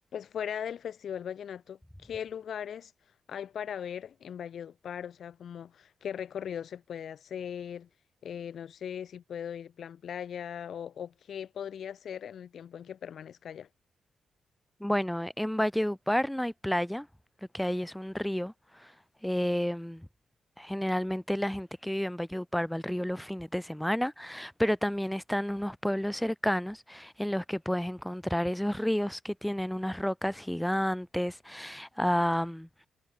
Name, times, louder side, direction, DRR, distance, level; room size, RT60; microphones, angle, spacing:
voice 1, 0.1-2.9 3.3-7.9 8.2-13.7, left 8 dB, 70° left, 3.1 m, -39 dB
voice 2, 14.8-17.1 17.5-18.9 19.2-20.1 20.6-32.7, equal, 5° left, 1.7 m, -30 dB
wide cardioid pair, 125°, 0 cm